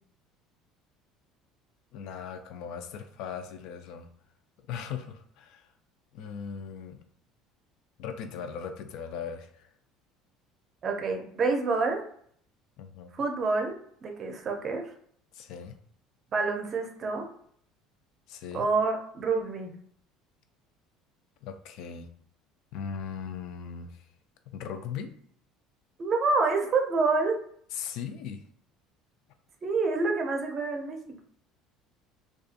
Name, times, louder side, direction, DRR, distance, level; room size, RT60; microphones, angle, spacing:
voice 1, 1.9-4.1 4.7-5.7 6.1-7.0 8.0-9.7 12.8-13.1 15.3-15.8 18.3-18.7 21.4-22.1 22.7-24.0 24.5-25.1 27.7-28.4, left 7 dB, 70° left, 7 dB, 0.4 m, -38 dB
voice 2, 10.8-12.0 13.1-13.7 14.0-14.9 16.3-17.3 18.5-19.7 26.0-27.4 29.6-31.2, right 4 dB, 40° right, 4 dB, 0.6 m, -27 dB
2.6 x 2.3 x 2.4 m, 0.62 s
supercardioid pair, 105°, 0 cm